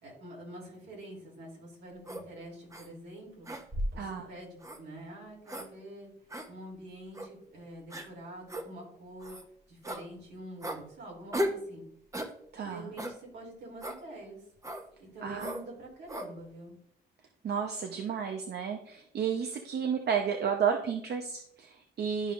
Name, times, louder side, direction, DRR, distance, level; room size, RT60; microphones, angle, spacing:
voice 1, 0.0-3.5 3.9-6.1 6.5-9.4 9.7-11.8 12.6-14.4 15.0-16.8, right 1 dB, 75° right, -2 dB, 3.2 m, -46 dB
sound 1, 2.1-2.2 2.7-2.9 3.5-4.0 4.6-4.8 5.5-5.7 6.3-6.5 7.1-7.3 7.9-8.1 8.5-8.7 9.2-9.4 9.8-10.0 10.6-10.8 11.3-11.6 12.1-12.3 13.0-13.2 13.8-14.0 14.6-14.9 15.4-15.6 16.1-16.3, equal, 15° right, 1.0 m, -35 dB
voice 2, 4.0-4.3 12.5-12.9 15.2-15.5 17.4-22.3, right 7 dB, 60° right, 4 dB, 0.9 m, -32 dB
12.0 x 5.1 x 2.6 m, 0.71 s
cardioid pair, 90°, 19 cm